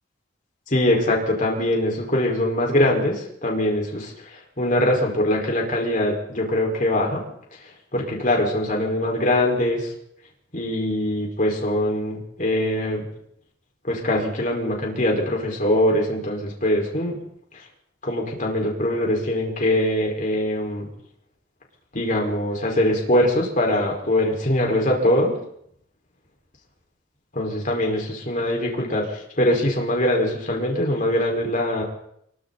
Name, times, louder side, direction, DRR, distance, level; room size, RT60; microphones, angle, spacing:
voice 1, 0.7-7.2 7.9-9.9 10.5-13.0 13.8-17.2 18.0-20.8 21.9-25.4 27.3-31.8, left 1 dB, 40° left, 0 dB, 5.2 m, -22 dB
27.0 x 23.5 x 4.2 m, 0.71 s
head